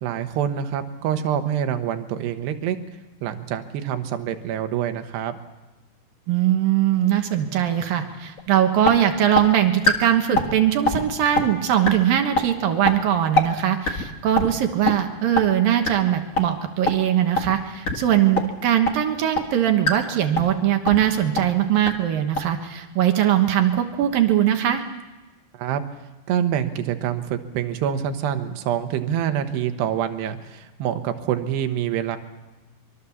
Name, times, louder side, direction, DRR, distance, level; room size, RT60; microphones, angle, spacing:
voice 1, 0.0-2.8 3.2-5.4 25.5-25.8 26.3-32.2, right 9 dB, 85° right, 8 dB, 3.4 m, -26 dB
voice 2, 6.3-24.8, right 11 dB, 65° right, 5 dB, 2.8 m, -21 dB
sound 1, 8.4-8.5 8.8-8.9 9.3-9.4 9.8-9.9 10.3-10.5 10.8-11.0 11.3-11.4 11.8-11.9 12.3-12.4 12.8-12.9 13.3-13.4 13.8-14.0 14.3-14.5 14.8-14.9 15.3-15.4 15.8-15.9 16.3-16.4 16.8-16.9 17.3-17.5 17.8-17.9 18.3-18.4 18.8-18.9 19.3-19.4 19.8-19.9 20.3-20.5 20.8-21.0 21.3-21.4 21.8-21.9 22.3-22.4, left 3 dB, 80° left, 0.7 m, -20 dB
24.5 x 23.5 x 7.2 m, 1.1 s
omnidirectional pair, 4.7 m